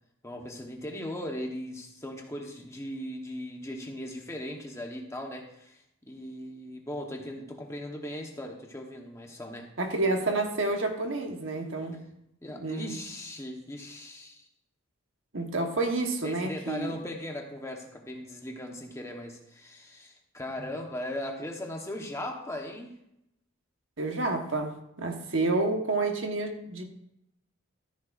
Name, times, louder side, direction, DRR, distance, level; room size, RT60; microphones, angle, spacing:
voice 1, 0.2-9.7 12.4-14.5 16.2-22.9, left 1 dB, 15° left, 1 dB, 1.1 m, -38 dB
voice 2, 9.8-12.0 12.5-12.9 15.3-17.0 24.0-26.8, right 2 dB, 60° right, 3 dB, 1.3 m, -29 dB
13.5 x 10.0 x 2.6 m, 0.80 s
head